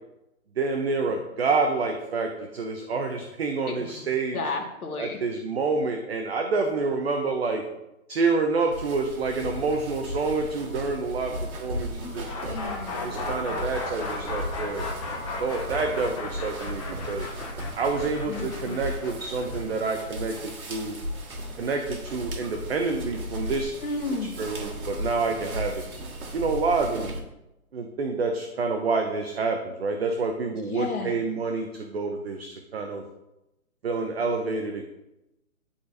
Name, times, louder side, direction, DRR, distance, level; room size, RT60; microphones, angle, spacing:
voice 1, 0.6-4.4 5.0-7.6 8.1-12.4 13.0-14.9 15.4-17.3 17.8-21.0 21.6-23.7 24.4-25.8 26.3-27.1 27.7-33.0 33.8-34.8, right 4 dB, 45° right, 4 dB, 0.6 m, -28 dB
voice 2, 3.7-5.2 11.9-13.2 18.3-18.8 23.8-24.3 30.7-31.2, left 3 dB, 90° left, 1 dB, 1.8 m, -34 dB
sound 1, 8.7-27.2, equal, 80° right, 1.7 m, -36 dB
sound 2, 12.3-22.1, left 3 dB, 25° left, 0.9 m, -36 dB
11.5 x 4.0 x 2.6 m, 0.93 s
hypercardioid pair, 165°, 43 cm